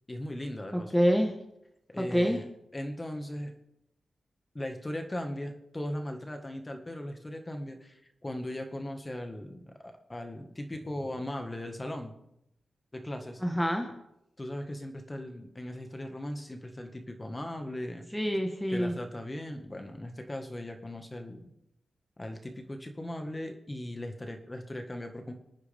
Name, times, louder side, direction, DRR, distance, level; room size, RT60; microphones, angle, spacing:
voice 1, 0.1-0.9 1.9-2.5 2.7-3.5 4.5-12.1 12.9-13.4 14.4-18.0 18.7-21.5 22.2-25.3, left 1 dB, 20° left, 5 dB, 1.7 m, -38 dB
voice 2, 0.7-1.3 2.0-2.4 13.4-13.9 18.1-18.9, equal, 5° left, 3 dB, 1.4 m, -26 dB
27.0 x 9.5 x 3.6 m, 0.84 s
wide cardioid pair, 85°, 0 cm